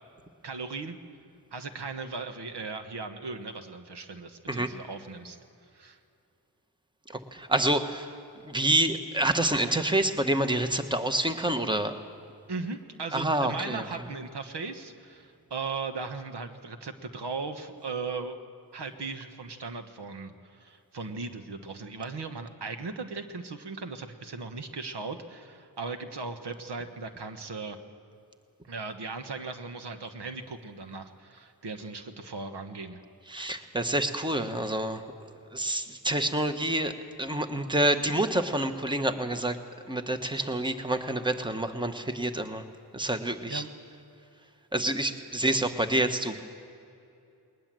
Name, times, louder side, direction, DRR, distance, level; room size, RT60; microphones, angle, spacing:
voice 1, 0.4-1.0 1.5-5.4 5.7-6.0 12.5-18.4 18.7-27.8 28.6-33.0 43.5-43.7, right 4 dB, 85° right, 7 dB, 1.4 m, -37 dB
voice 2, 7.1-8.1 8.4-12.0 13.1-13.8 33.3-35.0 35.5-36.9 37.2-39.6 39.9-42.6 42.9-43.6 44.7-46.4, right 1 dB, 10° right, 7 dB, 1.3 m, -27 dB
20.5 x 19.5 x 7.7 m, 2.6 s
wide cardioid pair, 65°, 40 cm